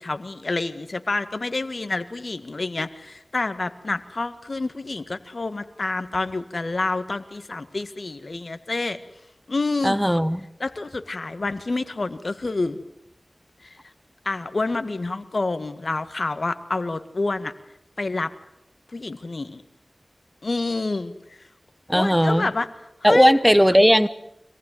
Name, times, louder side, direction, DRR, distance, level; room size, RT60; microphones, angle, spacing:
voice 1, 0.0-9.0 9.5-10.0 10.6-12.8 13.6-13.8 14.2-17.5 18.0-18.3 18.9-19.6 20.4-21.1 21.9-22.7 23.0-23.4, left 3 dB, 65° left, 11 dB, 1.8 m, -28 dB
voice 2, 9.8-10.4 21.9-22.5 23.0-24.1, equal, ahead, 14 dB, 1.1 m, -17 dB
26.0 x 19.0 x 9.5 m, 0.77 s
wide cardioid pair, 45°, 0 cm